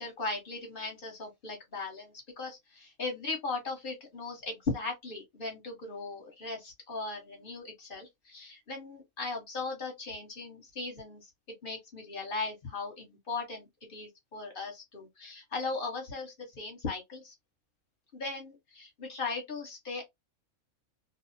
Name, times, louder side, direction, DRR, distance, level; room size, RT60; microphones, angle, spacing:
voice 1, 0.0-11.3 11.6-17.3 18.1-20.0, left 3 dB, 40° left, 1.0 m, -38 dB
2.6 x 2.0 x 2.5 m
omnidirectional pair, 1.5 m